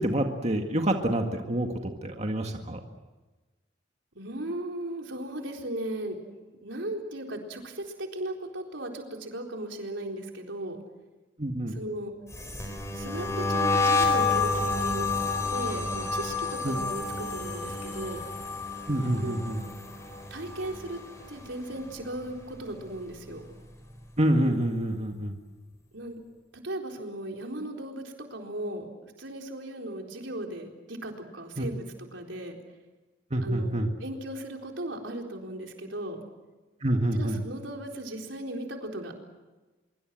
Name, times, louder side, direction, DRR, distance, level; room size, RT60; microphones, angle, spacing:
voice 1, 0.0-2.8 11.4-11.8 16.6-16.8 18.9-19.6 24.2-25.3 31.6-31.7 33.3-33.9 36.8-37.4, right 1 dB, 35° right, 3 dB, 1.9 m, -27 dB
voice 2, 4.1-6.2 6.6-10.8 11.7-12.1 12.9-15.1 15.5-18.2 19.2-19.5 20.3-21.0 21.3-23.4 25.9-26.2 26.6-28.0 28.3-32.6 33.4-36.2 37.1-39.1, right 1 dB, 85° right, 2 dB, 4.1 m, -37 dB
sound 1, 12.3-21.5 21.8-22.2 22.5-24.1, left 4 dB, 15° left, 4.5 m, -29 dB
24.5 x 24.0 x 7.7 m, 1.2 s
head